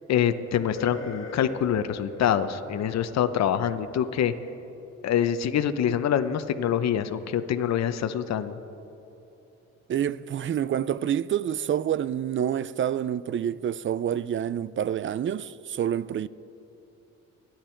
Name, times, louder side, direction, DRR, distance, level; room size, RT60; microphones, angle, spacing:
voice 1, 0.1-4.3 5.0-8.6, left 9 dB, 60° left, 0.8 m, -25 dB
sound 1, 0.8-4.8 5.9-6.0 6.9-7.0, left 3 dB, 40° left, 2.5 m, -43 dB
voice 2, 9.9-16.3, right 9 dB, 40° right, 0.5 m, -28 dB
27.0 x 10.5 x 4.5 m
cardioid pair, 90°, 30 cm